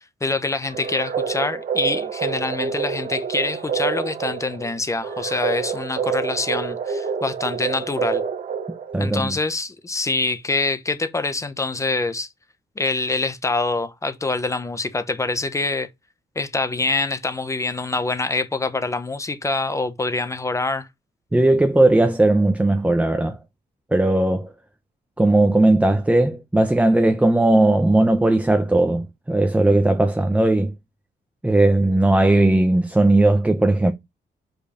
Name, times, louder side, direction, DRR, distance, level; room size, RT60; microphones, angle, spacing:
voice 1, 0.2-8.2 9.0-12.3 12.8-15.9 16.3-20.9, left 3 dB, 15° left, 0.9 m, -25 dB
sound 1, 0.7-9.1, right 6 dB, 55° right, 1.2 m, -27 dB
voice 2, 8.9-9.3 21.3-23.4 23.9-24.5 25.2-30.7 31.4-33.9, right 2 dB, 10° right, 0.7 m, -17 dB
5.3 x 4.6 x 5.0 m
cardioid pair, 140°, 18 cm